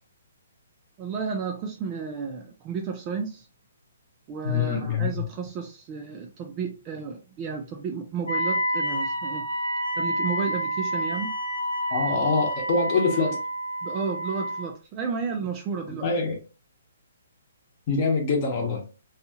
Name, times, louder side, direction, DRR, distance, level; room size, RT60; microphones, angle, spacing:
voice 1, 1.0-3.5 4.3-9.4 10.0-11.3 13.1-13.4 13.8-16.1, right 6 dB, 20° right, 0.3 m, -32 dB
voice 2, 4.4-5.1 11.9-13.3 15.9-16.4 17.9-18.8, left 4 dB, 30° left, 0.9 m, -24 dB
Wind instrument woodwind instrument, 8.3-14.7, equal, 75° left, 1.1 m, -28 dB
2.6 x 2.3 x 2.7 m
hypercardioid pair, 165°, 0 cm